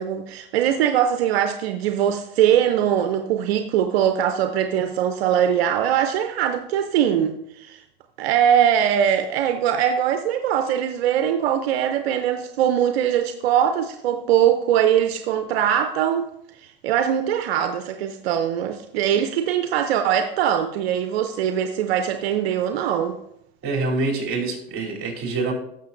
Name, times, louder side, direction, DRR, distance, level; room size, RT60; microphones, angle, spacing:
voice 1, 0.0-7.8 8.2-16.3 16.5-23.2, right 9 dB, 85° right, 7 dB, 0.6 m, -21 dB
voice 2, 23.6-25.5, right 3 dB, 45° right, -1 dB, 3.2 m, -25 dB
14.0 x 6.7 x 2.6 m, 0.77 s
supercardioid pair, 100°, 30 cm